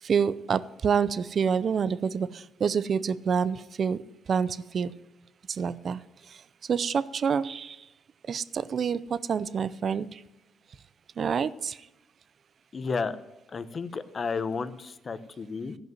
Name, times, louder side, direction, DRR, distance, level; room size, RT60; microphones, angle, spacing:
voice 1, 0.0-4.0 4.3-4.9 5.5-6.0 6.3-7.8 8.3-10.2 11.2-11.8, right 6 dB, 50° right, 17 dB, 0.5 m, -28 dB
voice 2, 12.7-13.2 13.5-15.8, left 4 dB, 40° left, 12 dB, 0.9 m, -32 dB
15.0 x 5.4 x 9.3 m, 0.95 s
cardioid pair, 90°, 0 cm